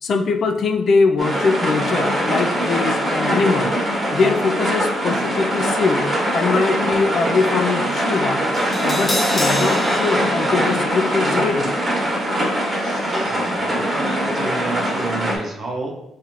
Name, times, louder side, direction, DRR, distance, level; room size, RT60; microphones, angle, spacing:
voice 1, 0.0-8.4 8.8-11.7 12.8-13.1, left 4 dB, 55° left, 6 dB, 0.3 m, -22 dB
sound 1, 1.2-15.4, equal, 25° right, 1.2 m, -22 dB
Crash cymbal, 8.5-14.7 15.0-15.1, left 1 dB, 20° left, 0.6 m, -30 dB
voice 2, 13.0-15.9, right 3 dB, 50° right, 0 dB, 0.6 m, -30 dB
4.0 x 2.5 x 3.0 m, 0.83 s
cardioid pair, 90°, 0 cm